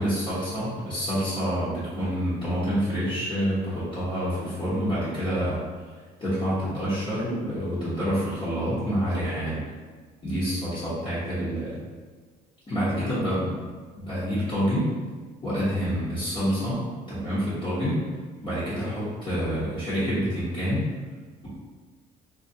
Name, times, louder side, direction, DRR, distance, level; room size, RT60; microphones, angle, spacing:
voice 1, 0.0-5.6 6.2-9.6 10.2-11.8 12.7-13.6 14.0-14.9 15.4-18.0 18.4-20.8, equal, 30° left, -13 dB, 1.1 m, -27 dB
2.9 x 2.5 x 2.8 m, 1.5 s
cardioid pair, 110°, 17 cm